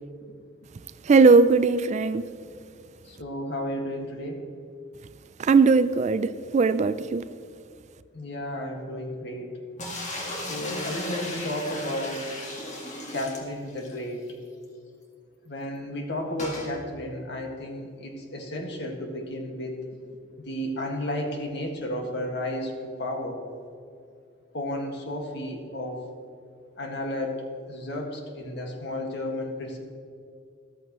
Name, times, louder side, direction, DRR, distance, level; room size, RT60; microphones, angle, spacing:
voice 1, 1.0-2.3 5.4-7.2, right 4 dB, 40° right, 14 dB, 0.4 m, -19 dB
voice 2, 3.0-4.4 8.1-9.5 10.4-12.3 13.1-14.2 15.5-19.8 20.4-23.4 24.5-26.0 26.8-27.4 27.7-29.8, left 1 dB, 65° left, 1 dB, 1.9 m, -33 dB
sound 1, 9.8-14.0 14.3-14.4 14.6-14.7 16.4-16.7, left 1 dB, 40° left, 2.0 m, -35 dB
14.0 x 13.5 x 3.1 m, 2.3 s
head